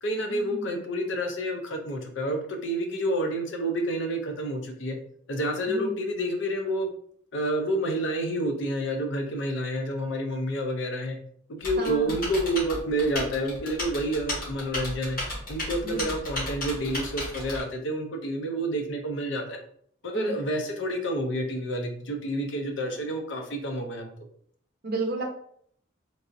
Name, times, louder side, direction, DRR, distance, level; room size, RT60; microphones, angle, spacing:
voice 1, 0.0-5.0 5.3-6.9 7.3-11.2 11.5-15.2 15.5-19.6 20.0-24.1, right 1 dB, 60° left, 4 dB, 0.6 m, -29 dB
Typing, 11.6-17.6, left 1 dB, 45° left, 1.3 m, -33 dB
voice 2, 11.8-12.2 15.8-16.1 20.1-20.4 24.8-25.2, right 3 dB, 50° right, 1 dB, 0.6 m, -32 dB
3.3 x 2.5 x 2.6 m, 0.63 s
head